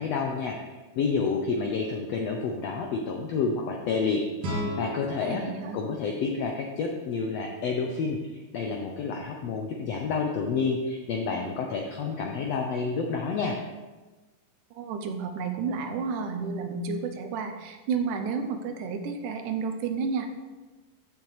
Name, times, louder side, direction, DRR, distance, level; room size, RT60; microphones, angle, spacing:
voice 1, 0.0-4.3 4.8-5.4 5.7-13.6, left 4 dB, 80° left, 2 dB, 1.4 m, -29 dB
sound 1, 4.4-7.4, left 1 dB, 60° right, 3.0 m, -36 dB
voice 2, 5.2-5.8 14.7-20.3, right 5 dB, 80° right, 6 dB, 2.1 m, -31 dB
14.0 x 6.7 x 3.2 m, 1.2 s
omnidirectional pair, 3.8 m